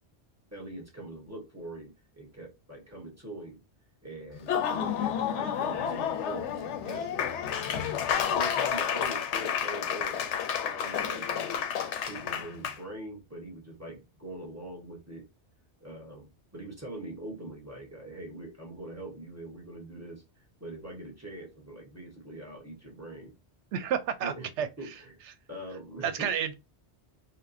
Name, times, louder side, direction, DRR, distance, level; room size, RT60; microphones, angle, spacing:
voice 1, 0.5-3.6 4.0-7.3 7.7-10.3 10.6-11.6 12.0-15.3 15.8-23.3 24.2-24.5 24.8-25.1 25.5-26.3, right 1 dB, 15° right, 1.1 m, -43 dB
Laughter / Applause, 4.3-12.8, left 8 dB, 85° left, 0.9 m, -30 dB
voice 2, 23.7-24.7 26.0-26.5, right 8 dB, 85° right, 0.9 m, -30 dB
4.3 x 2.2 x 2.5 m
omnidirectional pair, 1.2 m